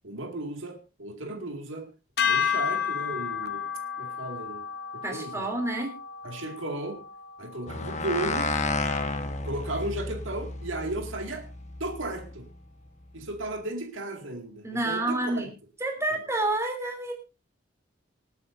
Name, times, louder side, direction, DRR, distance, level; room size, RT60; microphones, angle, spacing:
voice 1, 0.0-1.9 2.2-3.7 4.0-4.7 4.9-5.5 6.2-7.0 7.4-8.5 9.4-11.5 11.8-12.5 13.1-15.5, right 2 dB, 75° right, 2.1 m, -35 dB
sound 1, 2.2-8.5, left 7 dB, 50° left, 0.8 m, -32 dB
voice 2, 5.0-5.9 14.6-15.5 15.8-17.1, right 2 dB, 15° right, 3.1 m, -29 dB
sound 2, 7.7-12.3, left 3 dB, 35° left, 1.2 m, -32 dB
26.0 x 8.8 x 2.6 m
head